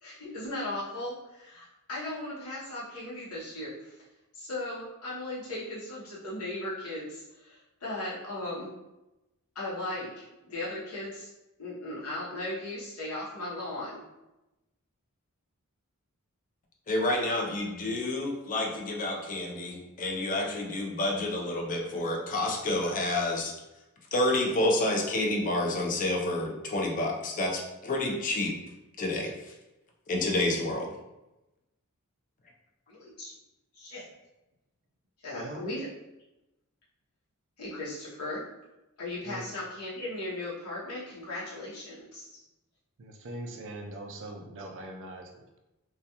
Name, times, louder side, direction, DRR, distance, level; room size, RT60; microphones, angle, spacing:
voice 1, 0.0-4.0 4.3-8.7 9.5-11.3 11.6-14.0 32.9-33.3 33.7-34.0 35.2-35.9 37.6-38.4 39.0-42.4, left 1 dB, 70° left, -8 dB, 0.8 m, -37 dB
voice 2, 16.9-23.5 24.1-28.5 29.0-29.3 30.1-30.9, left 1 dB, 35° left, 0 dB, 0.5 m, -29 dB
voice 3, 35.3-35.7 39.2-39.4 43.0-45.6, right 1 dB, 60° right, 3 dB, 0.4 m, -41 dB
2.3 x 2.2 x 2.8 m, 0.97 s
head